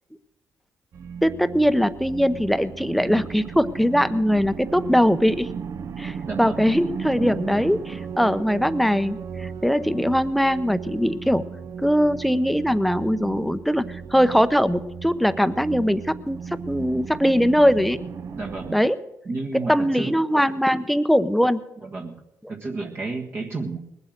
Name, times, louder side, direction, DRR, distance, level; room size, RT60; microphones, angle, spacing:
sound 1, 0.9-18.7, right 6 dB, 55° right, 0.7 m, -35 dB
voice 1, 1.2-5.5 6.0-11.4 11.8-16.4 16.7-18.0 18.7-18.9 19.7-21.6, equal, ahead, 13 dB, 0.7 m, -21 dB
voice 2, 6.2-6.7 18.3-18.8 19.2-20.2 21.8-23.8, right 3 dB, 40° right, -1 dB, 1.6 m, -32 dB
20.0 x 8.0 x 6.5 m, 0.93 s
cardioid pair, 85°, 6 cm